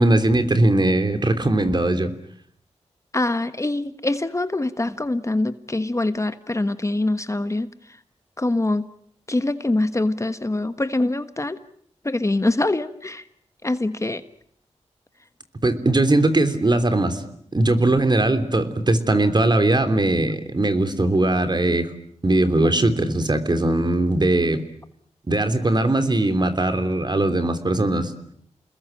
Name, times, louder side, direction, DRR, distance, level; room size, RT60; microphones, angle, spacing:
voice 1, 0.0-2.1 15.6-17.2 17.5-21.9 22.2-24.6 25.3-28.1, right 2 dB, 40° right, 9 dB, 3.4 m, -20 dB
voice 2, 3.1-7.7 8.4-8.9 9.3-11.6 12.0-13.2 13.6-14.2, left 2 dB, 25° left, 11 dB, 1.3 m, -24 dB
29.0 x 21.0 x 9.0 m, 0.66 s
wide cardioid pair, 70°, 12 cm